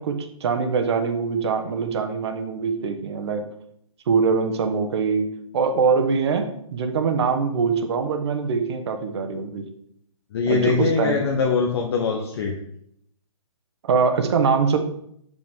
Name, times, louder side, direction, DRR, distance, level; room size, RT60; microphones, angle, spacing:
voice 1, 0.0-3.4 4.1-5.3 5.5-9.7 10.5-11.2 13.8-14.8, right 5 dB, 50° right, 6 dB, 1.1 m, -23 dB
voice 2, 10.3-12.5, left 5 dB, 45° left, 1 dB, 1.0 m, -22 dB
8.0 x 5.3 x 3.6 m, 0.71 s
figure-of-eight pair, 135°, 18 cm